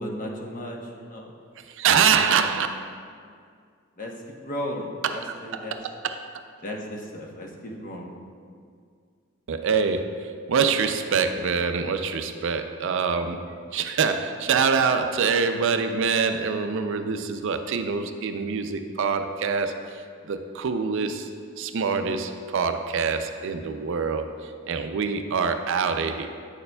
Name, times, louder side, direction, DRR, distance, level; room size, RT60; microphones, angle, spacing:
voice 1, 0.0-1.3 2.0-2.5 4.0-5.8 6.6-8.1, equal, 40° left, -1 dB, 0.9 m, -35 dB
voice 2, 1.8-2.7 5.0-5.2 5.5-6.3 9.5-13.4 13.7-20.0 20.3-21.3 21.6-26.3, right 5 dB, 65° right, 8 dB, 0.4 m, -25 dB
9.4 x 6.6 x 2.3 m, 2.2 s
head